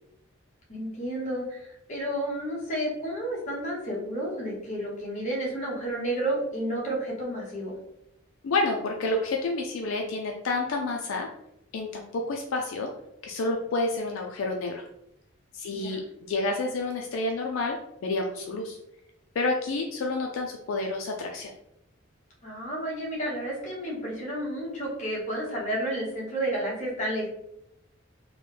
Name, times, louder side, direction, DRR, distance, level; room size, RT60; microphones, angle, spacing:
voice 1, 0.7-7.7 15.7-16.0 22.4-27.3, right 1 dB, 35° left, -4 dB, 1.0 m, -31 dB
voice 2, 8.4-11.3 11.7-12.9 13.2-14.8 15.5-17.8 18.0-18.8 19.4-21.5, left 2 dB, 70° left, 1 dB, 0.4 m, -29 dB
3.1 x 2.1 x 3.3 m, 0.82 s
head